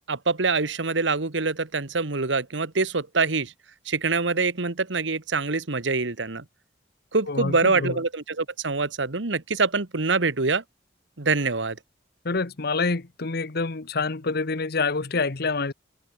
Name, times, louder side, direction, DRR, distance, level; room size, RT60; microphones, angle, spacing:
voice 1, 0.1-3.5 3.8-6.4 7.1-10.6 11.2-11.8, right 4 dB, 80° right, 1.5 m, -25 dB
voice 2, 7.3-8.0 12.2-15.7, left 3 dB, 60° left, 1.1 m, -27 dB
head